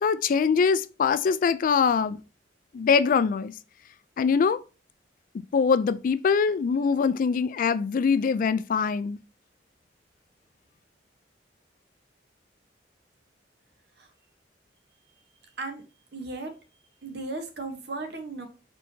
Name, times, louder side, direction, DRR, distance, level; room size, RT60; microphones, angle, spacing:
voice 1, 0.0-2.2 2.7-3.5 4.2-4.6 5.5-9.2, left 5 dB, 50° left, 0.3 m, -23 dB
voice 2, 16.1-16.5 17.0-18.5, right 3 dB, 65° right, 1.0 m, -35 dB
4.5 x 4.3 x 2.7 m
head